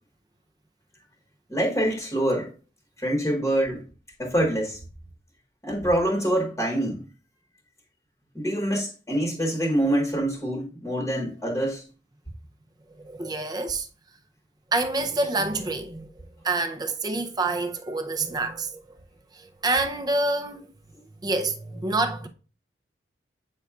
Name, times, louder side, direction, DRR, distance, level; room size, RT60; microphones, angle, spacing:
voice 1, 1.5-2.5 3.0-3.8 4.2-4.8 5.6-7.0 8.3-11.8, right 1 dB, 15° left, 1.1 m, -25 dB
voice 2, 12.9-13.9 14.7-16.1 16.4-19.0 19.3-20.7 21.2-22.3, right 2 dB, 25° right, 0.6 m, -27 dB
8.0 x 5.5 x 2.4 m
head